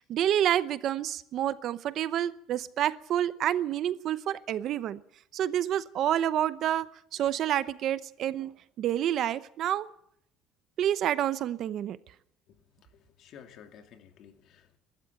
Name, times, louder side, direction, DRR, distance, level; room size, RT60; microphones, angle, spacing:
voice 1, 0.0-5.0 5.3-6.9 7.1-8.5 8.8-9.9 10.8-12.0, right 11 dB, 45° right, 15 dB, 0.7 m, -28 dB
voice 2, 12.9-14.8, left 8 dB, 50° left, 6 dB, 2.5 m, -53 dB
22.5 x 13.0 x 9.1 m, 0.70 s
cardioid pair, 170°, 0 cm